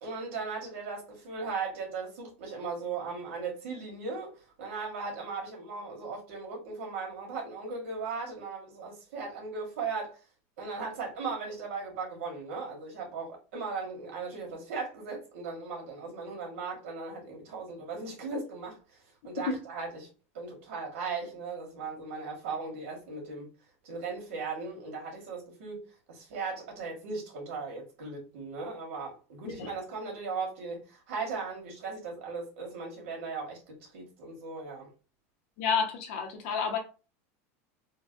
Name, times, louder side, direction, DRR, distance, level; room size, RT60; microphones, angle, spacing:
voice 1, 0.0-10.2 10.6-19.0 19.2-20.1 20.3-23.5 23.8-34.9, right 4 dB, 85° right, 1.7 m, -37 dB
voice 2, 35.6-36.8, left 6 dB, 55° left, 0.8 m, -30 dB
3.8 x 2.3 x 2.6 m
supercardioid pair, 180°, 7 cm